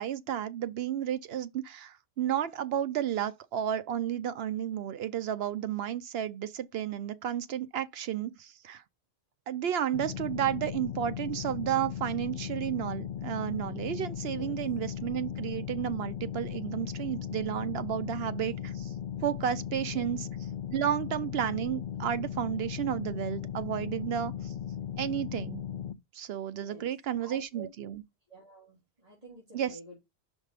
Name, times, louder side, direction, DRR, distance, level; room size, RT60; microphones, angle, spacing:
voice 1, 0.0-8.8 9.5-18.9 19.2-20.3 20.7-24.5 25.0-25.6 26.1-28.0 29.5-29.7, right 10 dB, 70° right, 0.8 m, -32 dB
sound 1, 9.9-25.9, left 9 dB, 60° left, 0.7 m, -37 dB
voice 2, 26.6-26.9 27.2-27.7 28.3-30.0, right 2 dB, 35° right, 2.8 m, -48 dB
5.3 x 4.1 x 5.0 m
omnidirectional pair, 1.1 m